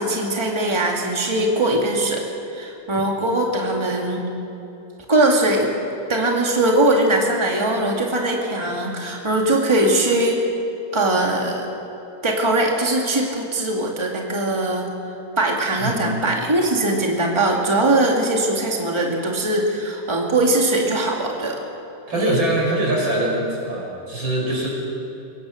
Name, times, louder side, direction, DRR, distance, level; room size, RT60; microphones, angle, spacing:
voice 1, 0.0-2.2 2.5-4.2 5.1-5.7 6.1-10.4 10.9-11.7 12.2-14.9 15.4-21.6 22.1-22.4, right 1 dB, 15° right, -1 dB, 2.2 m, -21 dB
voice 2, 15.8-16.2 22.1-24.7, right 1 dB, 85° right, -2 dB, 6.2 m, -23 dB
23.5 x 17.5 x 6.5 m, 2.9 s
omnidirectional pair, 2.1 m